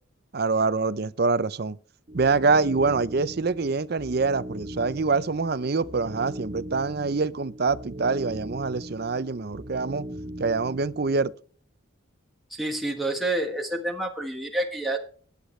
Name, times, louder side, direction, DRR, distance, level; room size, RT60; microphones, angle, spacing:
voice 1, 0.3-1.8 2.1-10.1 10.4-11.3, right 4 dB, 50° right, 0.6 m, -25 dB
sound 1, 2.1-11.3, right 1 dB, 35° right, 0.9 m, -39 dB
voice 2, 12.5-15.0, right 1 dB, ahead, 1.3 m, -28 dB
19.5 x 8.3 x 3.2 m
head